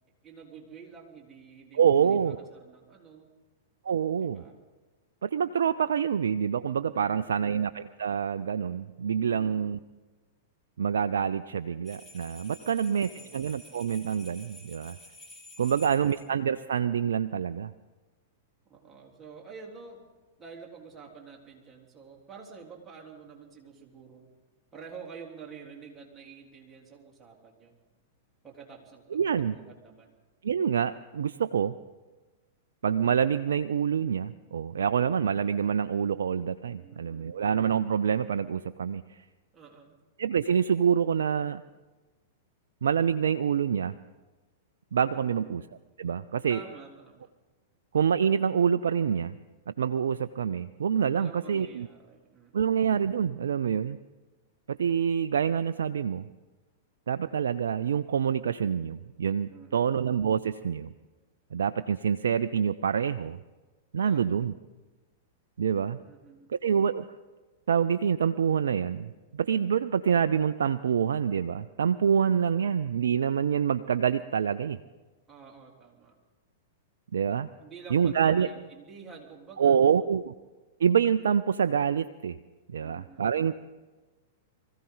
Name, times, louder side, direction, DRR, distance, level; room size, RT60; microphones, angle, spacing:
voice 1, 0.2-3.3 4.2-4.6 6.9-7.7 9.3-9.8 12.6-13.4 18.7-20.0 20.4-24.3 24.7-27.8 28.4-30.2 36.8-37.4 39.5-40.0 45.2-45.7 46.5-47.3 51.1-52.7 59.5-59.9 64.0-64.4 66.1-66.5 75.3-76.2 77.6-80.1 82.8-83.4, right 5 dB, 15° right, -2 dB, 3.6 m, -49 dB
voice 2, 1.7-2.4 3.8-4.4 5.2-9.8 10.8-15.0 15.6-17.7 29.1-29.5 30.4-31.7 32.8-39.2 40.2-41.6 42.8-43.9 44.9-45.6 46.0-46.6 47.9-49.3 49.7-51.9 52.5-54.0 54.7-56.3 57.1-60.9 61.5-63.4 63.9-64.5 65.6-66.0 66.5-67.0 67.7-74.8 77.1-77.5 77.9-78.5 79.6-80.3 80.8-82.4 82.7-83.6, right 7 dB, 75° right, 10 dB, 0.4 m, -26 dB
sound 1, 11.8-16.3, left 1 dB, 10° left, 3.4 m, -50 dB
24.0 x 15.5 x 3.9 m, 1.2 s
hypercardioid pair, 105°, 0 cm